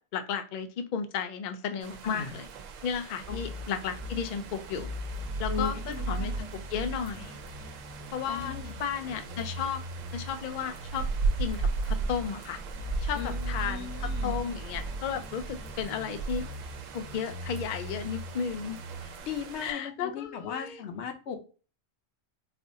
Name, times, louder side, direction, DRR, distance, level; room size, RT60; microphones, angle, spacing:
voice 1, 0.1-2.5 2.8-4.9 5.4-6.3 6.7-7.4 8.1-9.8 10.1-11.1 11.4-12.6 13.0-16.5 16.9-19.1 19.6-20.8, left 7 dB, 80° left, 9 dB, 0.4 m, -34 dB
sound 1, 1.8-19.7, right 4 dB, 75° right, 0.9 m, -38 dB
voice 2, 2.0-2.4 3.3-3.6 5.5-6.5 8.3-8.8 13.1-14.3 19.2-21.4, left 7 dB, 65° left, 6 dB, 0.9 m, -37 dB
sound 2, 3.2-19.2, right 1 dB, 45° right, 0.9 m, -39 dB
4.3 x 2.5 x 2.6 m, 0.36 s
omnidirectional pair, 1.4 m